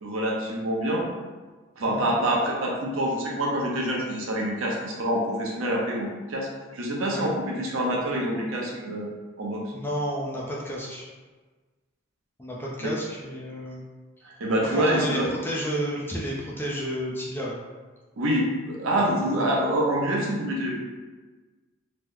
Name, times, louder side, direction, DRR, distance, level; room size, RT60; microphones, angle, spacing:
voice 1, 0.0-1.0 1.8-9.1 9.4-9.6 12.8-12.9 14.2-15.3 18.2-20.8, right 1 dB, 85° right, -2 dB, 0.7 m, -26 dB
voice 2, 9.7-11.1 12.4-13.8 14.7-17.6, equal, 10° left, -5 dB, 0.4 m, -31 dB
2.9 x 2.1 x 3.7 m, 1.3 s
head